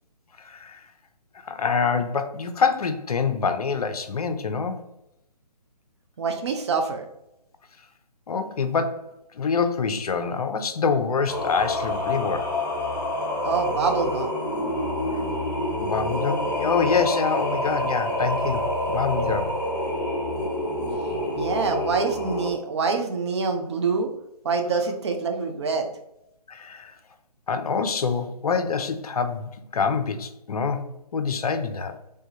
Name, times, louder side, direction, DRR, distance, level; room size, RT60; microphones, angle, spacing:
voice 1, 0.4-0.8 1.4-4.8 8.3-9.1 9.3-12.5 15.8-18.6 18.9-19.5 26.5-26.9 27.5-30.8 31.1-32.0, left 5 dB, 65° left, 9 dB, 0.5 m, -26 dB
voice 2, 6.2-7.0 13.4-14.4 21.4-24.1 24.4-25.9, right 4 dB, 45° right, 4 dB, 0.6 m, -25 dB
Singing, 11.3-22.5, left 1 dB, 25° left, 0.9 m, -27 dB
3.4 x 3.4 x 2.7 m, 0.83 s
figure-of-eight pair, 140°, 21 cm